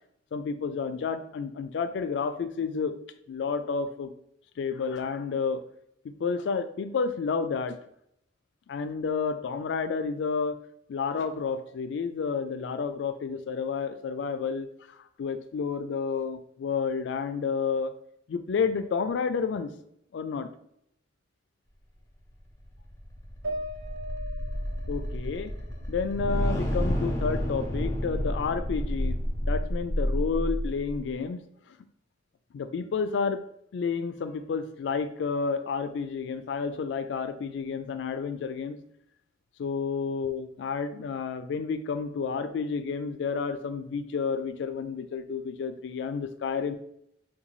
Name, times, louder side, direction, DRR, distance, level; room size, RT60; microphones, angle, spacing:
voice 1, 0.3-2.9 3.3-4.1 4.6-5.6 6.2-7.8 8.7-10.6 10.9-14.7 15.2-17.9 18.3-19.7 20.1-20.5 24.9-25.5 25.9-29.2 29.4-31.4 32.5-33.4 33.7-38.8 39.6-46.7, left 5 dB, 75° left, 10 dB, 0.3 m, -30 dB
sound 1, 22.6-31.0, equal, 15° left, 0.6 m, -30 dB
sound 2, 23.4-26.9 27.2-28.3, right 1 dB, 80° right, 0.7 m, -41 dB
3.8 x 2.3 x 3.0 m, 0.74 s
head